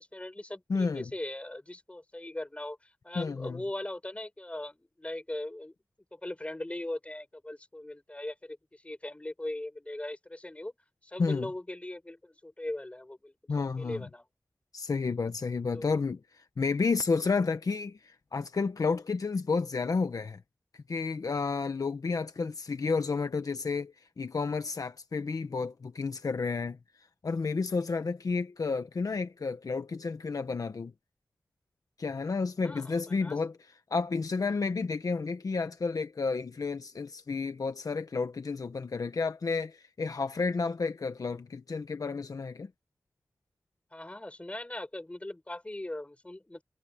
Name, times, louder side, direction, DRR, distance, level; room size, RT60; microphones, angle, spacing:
voice 1, 0.0-5.7 6.1-10.7 11.0-14.2 15.7-16.0 32.6-33.4 43.9-46.6, left 1 dB, 20° left, 4.9 m, -40 dB
voice 2, 0.7-1.0 3.1-3.6 11.2-11.5 13.5-14.0 14.7-16.2 16.6-20.4 20.7-26.8 27.2-30.9 32.0-33.6 33.9-42.7, left 4 dB, 70° left, 1.1 m, -31 dB
wide cardioid pair, 90°, 6 cm